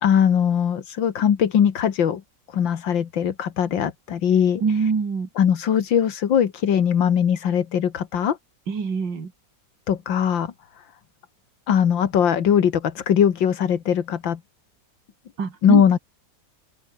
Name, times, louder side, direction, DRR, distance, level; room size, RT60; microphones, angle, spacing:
voice 1, 0.0-2.2 2.5-4.6 5.4-8.4 9.9-10.5 11.7-14.4 15.6-16.0, left 8 dB, 80° left, 2.2 m, -20 dB
voice 2, 4.6-5.3 8.7-9.3 15.4-16.0, right 5 dB, 70° right, 3.4 m, -24 dB
open air
omnidirectional pair, 2.0 m